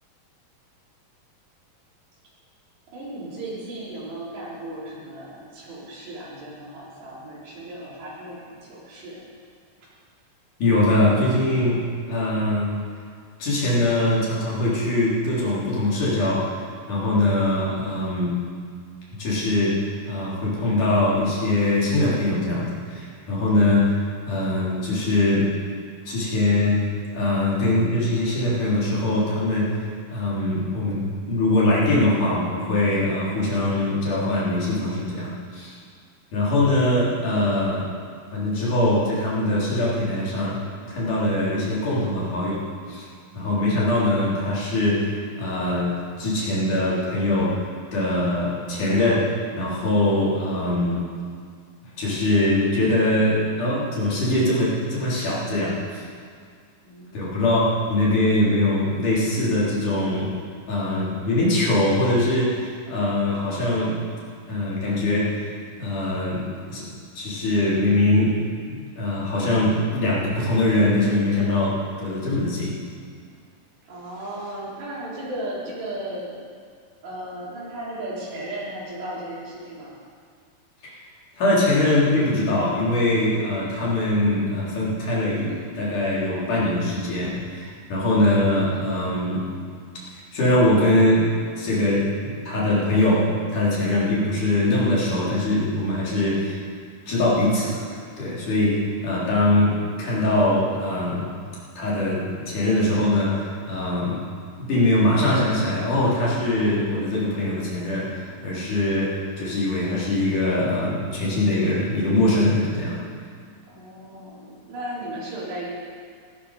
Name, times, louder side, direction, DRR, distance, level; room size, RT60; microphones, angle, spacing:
voice 1, 2.9-9.2 56.8-57.4 73.8-76.4 77.0-80.0 113.7-115.7, right 1 dB, 80° right, -7 dB, 6.3 m, -35 dB
voice 2, 10.6-12.8 13.4-18.4 19.2-25.5 26.0-35.8 36.3-37.9 38.3-40.6 40.9-43.0 43.3-51.0 52.0-56.0 57.1-60.3 60.7-64.0 64.5-65.5 65.8-66.8 67.1-68.4 68.7-72.8 81.4-89.5 90.1-96.6 97.1-97.9 98.2-101.3 101.8-104.2 104.6-113.0, left 1 dB, 50° left, -7 dB, 5.0 m, -22 dB
17.0 x 14.5 x 5.0 m, 2.1 s
omnidirectional pair, 4.8 m